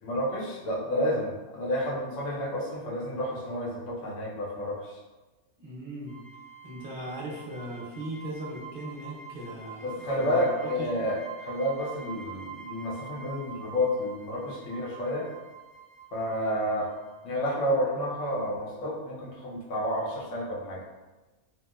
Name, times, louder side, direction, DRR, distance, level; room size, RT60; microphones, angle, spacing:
voice 1, 0.0-5.0 9.8-15.3 16.1-16.9 17.2-20.8, equal, 75° left, -5 dB, 1.0 m, -30 dB
voice 2, 5.6-6.2 6.6-10.9, right 1 dB, 55° right, -4 dB, 0.8 m, -38 dB
sound 1, 6.1-17.5, right 7 dB, 20° right, 1.0 m, -46 dB
2.8 x 2.1 x 2.3 m, 1.2 s
omnidirectional pair, 1.3 m